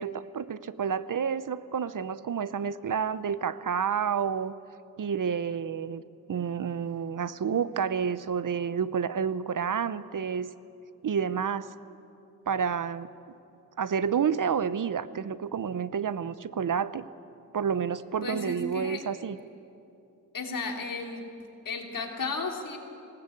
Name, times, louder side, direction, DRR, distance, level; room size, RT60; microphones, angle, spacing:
voice 1, 0.0-4.6 5.0-6.0 6.3-10.5 11.0-11.7 12.5-13.1 13.8-17.0 17.5-19.4, right 7 dB, 60° right, 15 dB, 0.7 m, -29 dB
voice 2, 18.2-19.0 20.3-21.2 21.6-22.8, left 3 dB, 65° left, 2 dB, 3.1 m, -34 dB
20.0 x 18.5 x 8.5 m, 2.6 s
wide cardioid pair, 80°, 36 cm